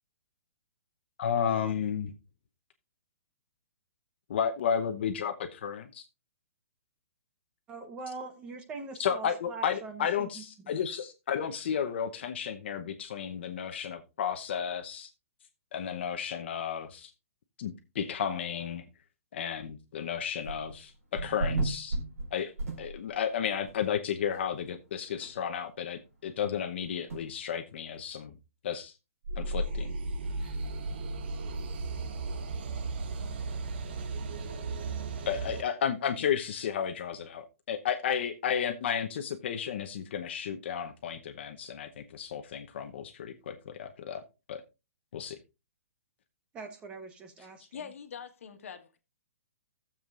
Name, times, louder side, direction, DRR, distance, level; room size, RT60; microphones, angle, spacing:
voice 1, 1.2-2.1 4.3-6.0 9.0-15.1 15.7-17.1 17.6-18.8 19.3-22.0 22.3-22.5 22.8-28.3 28.6-28.9 29.4-29.9 35.3-44.2 44.5-44.6 45.1-45.3, left 8 dB, 50° left, 0.9 m, -33 dB
voice 2, 7.7-10.7 46.5-47.7, right 3 dB, 15° right, 0.9 m, -43 dB
sound 1, 20.4-20.8 21.2-23.3 23.7-23.8 24.3-24.4 24.7-24.8 25.2-25.3 27.1-27.2, right 2 dB, 90° right, 4.1 m, -33 dB
sound 2, 29.2-35.6, right 3 dB, 45° right, 1.1 m, -35 dB
voice 3, 47.7-49.0, left 7 dB, 70° left, 1.5 m, -43 dB
15.5 x 7.2 x 2.5 m
hypercardioid pair, 165°, 8 cm